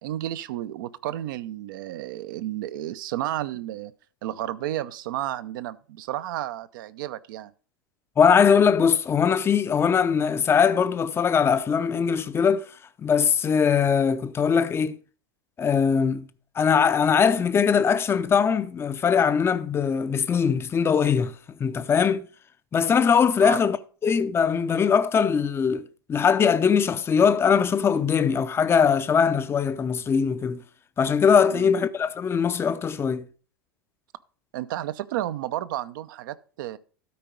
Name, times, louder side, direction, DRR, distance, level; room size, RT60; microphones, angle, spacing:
voice 1, 0.0-3.9 4.2-7.5 23.4-23.6 31.5-31.7 34.5-36.8, right 13 dB, 60° right, 0.6 m, -32 dB
voice 2, 8.2-12.7 13.0-15.0 15.6-16.3 16.6-21.3 21.6-22.3 22.7-23.8 24.0-30.6 31.0-33.3, left 6 dB, 20° left, 0.6 m, -21 dB
12.5 x 4.6 x 5.1 m
hypercardioid pair, 90°, 12 cm